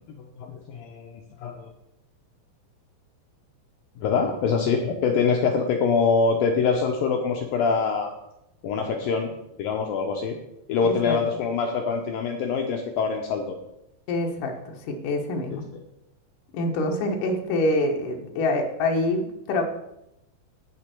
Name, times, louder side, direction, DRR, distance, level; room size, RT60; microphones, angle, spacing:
voice 1, 0.0-1.7 4.0-8.1 8.6-9.3 9.6-10.4 10.7-13.6 15.5-15.6, left 5 dB, 75° left, 3 dB, 2.1 m, -24 dB
voice 2, 10.8-11.2 14.1-15.7 16.5-19.6, left 2 dB, 60° left, 2 dB, 2.5 m, -26 dB
17.0 x 5.9 x 4.5 m, 0.84 s
omnidirectional pair, 5.1 m